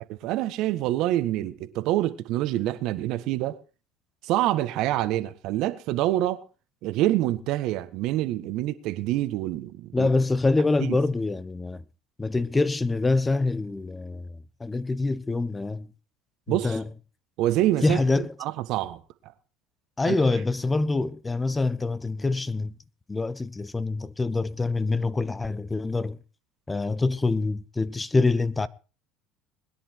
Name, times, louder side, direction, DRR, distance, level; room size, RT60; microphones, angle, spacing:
voice 1, 0.1-3.6 4.2-6.4 6.8-10.1 10.8-11.0 16.5-16.8 17.4-19.0 20.0-20.1, right 14 dB, 65° right, 1.5 m, -26 dB
voice 2, 9.9-11.8 12.2-14.3 14.6-15.9 16.5-16.8 17.8-18.3 20.0-22.8 23.1-26.2 26.7-28.7, left 3 dB, 20° left, 1.0 m, -25 dB
21.0 x 10.5 x 4.6 m
hypercardioid pair, 75°, 0 cm